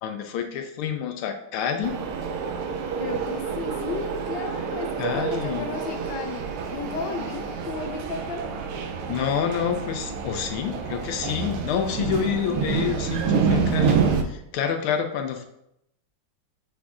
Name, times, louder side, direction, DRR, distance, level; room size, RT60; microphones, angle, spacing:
voice 1, 0.0-1.9 5.0-5.7 9.1-15.4, left 8 dB, 85° left, 5 dB, 1.5 m, -28 dB
sound 1, 1.8-14.2, right 6 dB, 90° right, 1.5 m, -28 dB
voice 2, 3.0-8.5, left 4 dB, 70° left, 4 dB, 1.4 m, -34 dB
7.4 x 5.9 x 2.4 m, 0.81 s
omnidirectional pair, 2.3 m